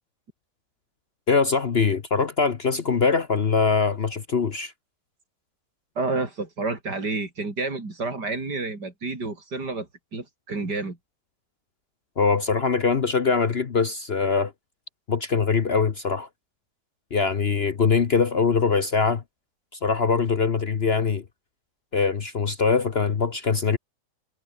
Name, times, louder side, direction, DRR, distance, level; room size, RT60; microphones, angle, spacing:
voice 1, 1.3-4.7 12.2-14.5 15.1-16.3 17.1-19.2 19.8-21.2 21.9-23.8, left 5 dB, 45° left, 1.1 m, -22 dB
voice 2, 6.0-11.0, right 3 dB, 75° right, 5.1 m, -30 dB
omnidirectional pair, 1.8 m